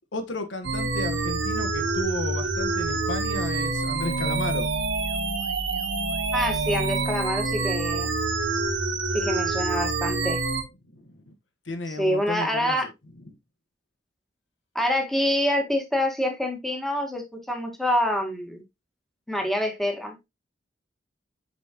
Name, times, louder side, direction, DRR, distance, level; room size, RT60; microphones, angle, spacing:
voice 1, 0.1-4.7 10.9-11.3 11.6-12.9 13.2-13.4, left 2 dB, 75° left, 1.4 m, -33 dB
sound 1, 0.6-10.6, right 3 dB, 70° right, 1.4 m, -27 dB
voice 2, 6.3-8.1 9.1-10.4 11.9-12.9 14.7-18.6 19.3-20.3, equal, ahead, 1.6 m, -26 dB
7.3 x 5.4 x 2.9 m
head